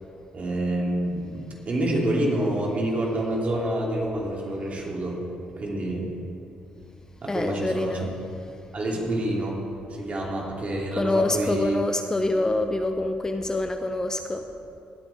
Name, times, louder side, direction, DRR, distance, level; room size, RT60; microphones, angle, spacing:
voice 1, 0.3-5.2 5.6-6.2 7.2-8.1 8.7-9.6 9.9-11.8, right 1 dB, 45° right, -2 dB, 3.0 m, -27 dB
voice 2, 7.3-8.1 11.0-14.5, left 2 dB, 20° left, 6 dB, 0.7 m, -26 dB
19.0 x 8.3 x 3.6 m, 2.8 s
supercardioid pair, 75°, 3 cm